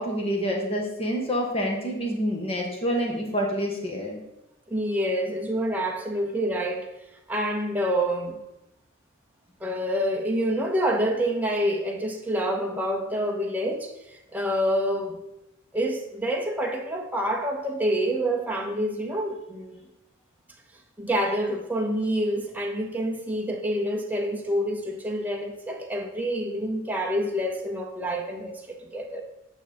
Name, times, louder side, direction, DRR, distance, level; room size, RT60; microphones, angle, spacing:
voice 1, 0.0-4.2, equal, 30° left, 1.5 m, -27 dB
voice 2, 4.7-6.9 7.3-8.4 9.6-15.2 15.7-19.8 21.0-29.2, equal, 10° right, 0.8 m, -27 dB
8.9 x 5.6 x 4.2 m
head